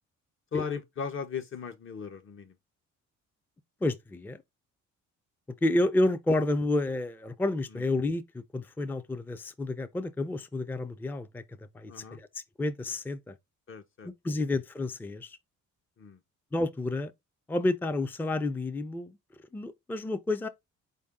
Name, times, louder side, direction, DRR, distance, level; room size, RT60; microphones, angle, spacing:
voice 1, 0.5-2.6 7.7-7.8 11.9-12.2 13.7-14.1 16.0-16.2, left 6 dB, 45° left, 0.8 m, -37 dB
voice 2, 3.8-4.4 5.6-13.3 14.0-15.4 16.5-17.1 17.5-19.2 19.5-20.5, left 2 dB, 5° left, 0.4 m, -30 dB
4.5 x 2.7 x 3.5 m
cardioid pair, 90°, 30 cm